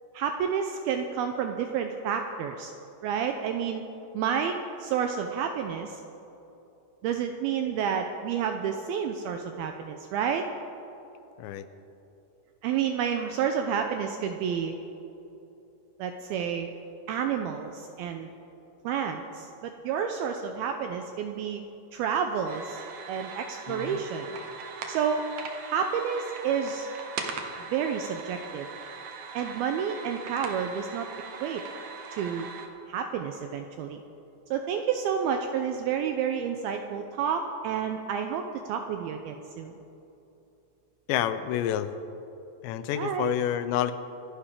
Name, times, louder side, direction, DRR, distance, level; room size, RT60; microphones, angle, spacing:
voice 1, 0.1-2.7 3.0-3.8 4.1-4.5 4.8-6.0 7.0-10.4 12.6-14.7 16.0-16.7 17.1-18.3 18.8-21.6 21.9-22.8 23.1-24.4 24.9-25.2 25.7-26.9 27.7-28.7 29.3-31.1 31.4-31.6 32.1-32.5 32.9-34.0 34.5-39.7 42.9-43.4, right 7 dB, 90° right, 5 dB, 2.2 m, -30 dB
sound 1, 22.5-32.7, right 5 dB, 75° right, 1.7 m, -40 dB
voice 2, 23.7-24.0 41.1-41.9 42.6-43.9, left 11 dB, 85° left, 11 dB, 2.9 m, -28 dB
26.5 x 11.0 x 3.7 m, 2.9 s
omnidirectional pair, 5.0 m